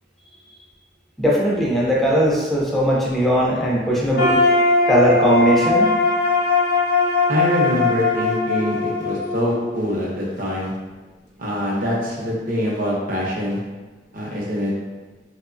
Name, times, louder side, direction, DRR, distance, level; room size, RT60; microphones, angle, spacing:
voice 1, 1.2-4.5 4.9-5.9, equal, ahead, -5 dB, 0.5 m, -19 dB
sound 1, 4.2-10.1, left 3 dB, 60° left, 0.4 m, -20 dB
voice 2, 7.3-10.7 11.4-13.6 14.1-14.7, equal, 50° right, -4 dB, 0.6 m, -24 dB
2.9 x 2.1 x 2.5 m, 1.2 s
head